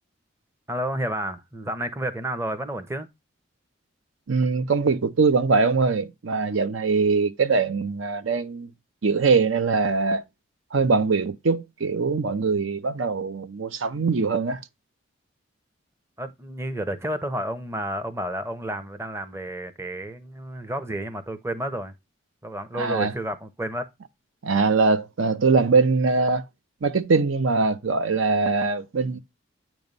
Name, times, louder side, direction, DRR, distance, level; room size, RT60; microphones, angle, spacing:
voice 1, 0.7-3.1 16.2-21.9 22.4-23.9, right 1 dB, 15° right, 0.6 m, -31 dB
voice 2, 4.3-8.7 9.0-10.2 10.7-14.6 22.8-23.1 24.4-26.4 26.8-29.2, right 4 dB, 80° right, 0.6 m, -22 dB
8.8 x 3.1 x 5.2 m
head